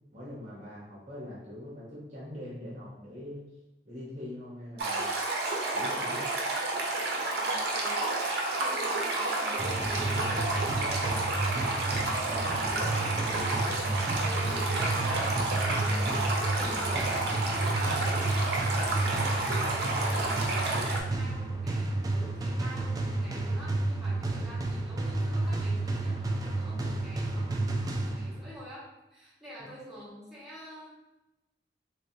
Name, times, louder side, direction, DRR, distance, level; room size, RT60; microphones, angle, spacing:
voice 1, 0.1-3.4 3.8-5.1 5.7-6.2 29.6-29.7, left 1 dB, 40° right, -7 dB, 1.0 m, -42 dB
Stream, 4.8-21.0, right 2 dB, 65° right, 0.7 m, -30 dB
voice 2, 7.3-8.3 8.6-18.5 18.8-30.9, equal, ahead, -11 dB, 1.5 m, -46 dB
sound 1, 9.6-28.6, right 2 dB, 20° right, 0.3 m, -31 dB
3.5 x 3.1 x 2.7 m, 1.0 s
head